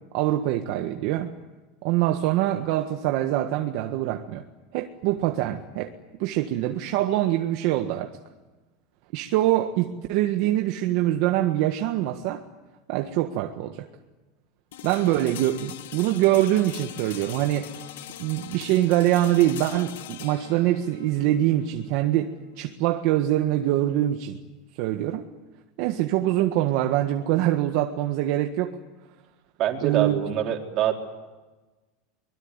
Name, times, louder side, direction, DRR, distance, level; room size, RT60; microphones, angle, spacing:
voice 1, 0.1-1.3 1.8-4.5 4.7-5.9 6.2-8.1 9.1-12.4 12.9-13.9 14.8-17.7 18.2-24.4 24.8-25.3 25.8-28.8 29.8-30.2, right 13 dB, 60° right, 5 dB, 1.6 m, -24 dB
sound 1, 14.7-24.6, left 12 dB, 85° left, 1.7 m, -43 dB
voice 2, 29.6-30.9, right 11 dB, 40° right, 2 dB, 4.0 m, -25 dB
24.0 x 22.0 x 9.8 m, 1.2 s
supercardioid pair, 145°, 0 cm